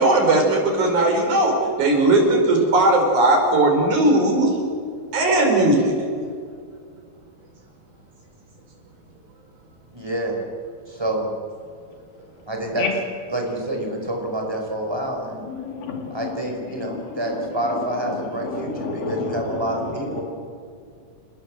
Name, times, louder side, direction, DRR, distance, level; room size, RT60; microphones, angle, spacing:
voice 1, 0.0-4.5 5.1-5.9, right 2 dB, 55° right, 2 dB, 6.2 m, -18 dB
voice 2, 9.9-10.3 10.9-11.3 12.5-12.9 13.3-15.5 16.1-20.2, right 1 dB, 5° right, 1 dB, 4.9 m, -27 dB
voice 3, 15.5-16.3 17.4-17.5 18.4-19.6, left 5 dB, 80° left, 2 dB, 4.6 m, -29 dB
27.5 x 20.5 x 7.7 m, 2.2 s
omnidirectional pair, 4.0 m